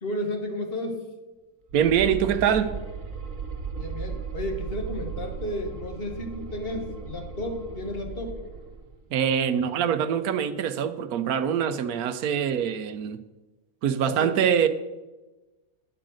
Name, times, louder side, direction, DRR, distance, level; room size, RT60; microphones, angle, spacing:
voice 1, 0.0-1.0 3.8-8.4 13.9-14.4, left 1 dB, 40° left, 4 dB, 1.6 m, -33 dB
sound 1, 1.7-8.9, right 5 dB, 65° right, 1.4 m, -36 dB
voice 2, 1.7-2.7 9.1-13.2 13.8-14.7, right 8 dB, 80° right, 11 dB, 1.2 m, -24 dB
10.5 x 7.6 x 6.3 m, 1.1 s
omnidirectional pair, 1.6 m